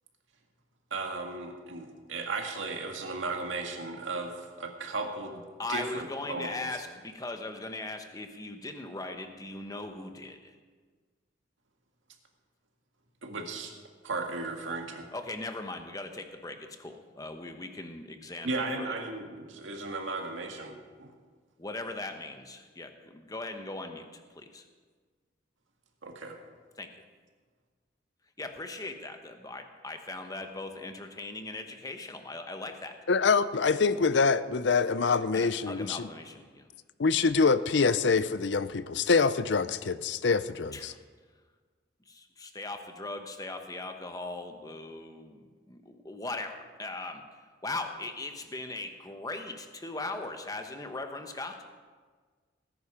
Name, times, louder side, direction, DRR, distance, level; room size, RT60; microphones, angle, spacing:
voice 1, 0.9-6.5 13.2-13.7 14.0-15.1 18.4-21.1 26.0-26.4, right 3 dB, 85° right, 3 dB, 1.9 m, -36 dB
voice 2, 5.6-10.5 15.1-18.9 21.6-24.6 26.8-27.0 28.4-32.9 35.3-36.7 40.7-41.0 42.0-47.2 47.6-51.6, left 2 dB, 20° left, 6 dB, 1.1 m, -39 dB
voice 3, 33.1-36.1 37.0-40.9, left 4 dB, 65° left, 14 dB, 0.5 m, -25 dB
19.0 x 10.5 x 5.0 m, 1.5 s
head